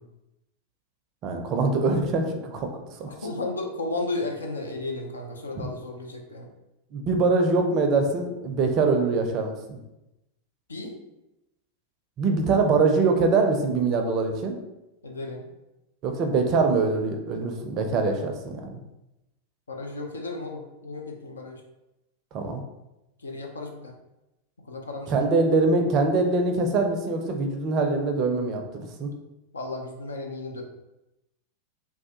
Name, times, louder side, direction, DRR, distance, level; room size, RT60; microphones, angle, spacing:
voice 1, 1.2-3.1 5.6-5.7 6.9-9.8 12.2-14.5 16.0-18.8 22.3-22.6 25.1-29.1, right 3 dB, 35° right, 4 dB, 0.4 m, -23 dB
voice 2, 3.2-6.5 10.7-11.0 15.0-15.5 19.7-21.6 23.2-23.9 24.6-25.2 29.5-30.6, left 2 dB, 75° left, 2 dB, 0.5 m, -34 dB
3.2 x 2.2 x 2.8 m, 0.94 s
figure-of-eight pair, 90°, 0 cm